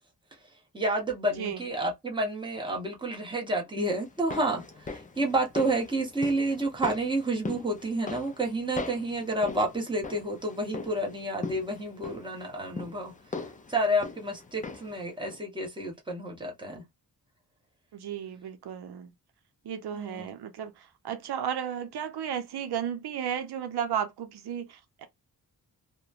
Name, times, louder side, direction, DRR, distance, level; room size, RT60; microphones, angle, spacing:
voice 1, 0.7-13.1 13.7-16.8 19.9-20.3, right 1 dB, 10° right, 0.9 m, -30 dB
sound 1, 4.0-15.0 15.3-15.4, left 4 dB, 20° left, 0.3 m, -41 dB
voice 2, 17.9-19.1 19.6-25.1, right 9 dB, 85° right, 0.6 m, -34 dB
3.0 x 2.1 x 2.4 m
wide cardioid pair, 140°, 38 cm